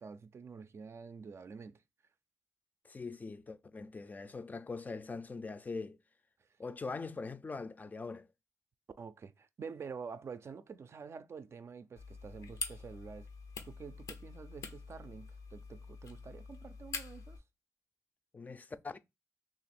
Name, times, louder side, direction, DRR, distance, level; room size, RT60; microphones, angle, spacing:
voice 1, 0.0-1.8 9.0-13.3 13.6-17.4, right 5 dB, 50° right, 0.4 m, -48 dB
voice 2, 2.8-6.0 6.6-8.3 18.3-19.0, left 4 dB, 30° left, 0.4 m, -42 dB
sound 1, 12.0-17.4, left 4 dB, 90° left, 0.7 m, -45 dB
2.9 x 2.5 x 4.2 m
cardioid pair, 85°, 6 cm